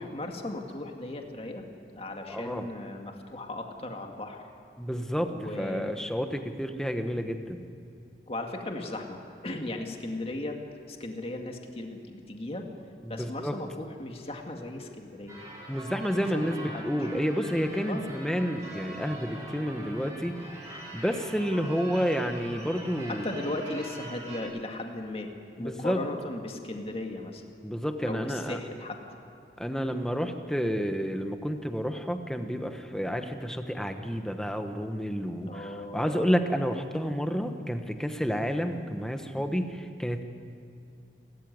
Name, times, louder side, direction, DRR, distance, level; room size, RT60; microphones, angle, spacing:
voice 1, 0.0-1.7 1.9-4.4 5.3-6.0 8.3-9.2 9.4-10.6 10.9-12.7 13.1-15.4 16.6-17.2 17.9-18.0 23.1-25.3 25.6-27.4 28.1-29.0 35.5-36.2 39.4-39.6, left 1 dB, 35° left, 3 dB, 2.1 m, -37 dB
voice 2, 2.3-2.7 4.8-7.6 13.0-13.6 15.7-20.4 20.7-23.3 25.6-26.1 27.6-28.6 29.6-40.2, equal, 5° left, 6 dB, 1.2 m, -30 dB
Church bell / Car / Alarm, 15.3-24.4, right 1 dB, 20° right, 5.1 m, -43 dB
29.5 x 14.0 x 9.5 m, 2.6 s
head